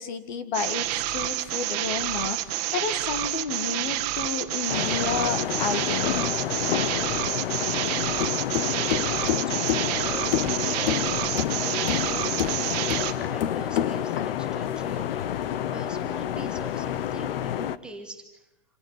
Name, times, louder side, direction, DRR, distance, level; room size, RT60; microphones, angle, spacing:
voice 1, 0.0-6.1, left 6 dB, 50° left, 12 dB, 2.0 m, -31 dB
sound 1, 0.5-13.1, right 15 dB, 40° right, 1.6 m, -29 dB
sound 2, 4.7-17.8, left 10 dB, 65° left, 1.1 m, -28 dB
voice 2, 8.6-18.5, right 3 dB, 5° right, 2 dB, 1.9 m, -44 dB
27.0 x 17.0 x 9.7 m, 0.87 s
supercardioid pair, 175°, 30 cm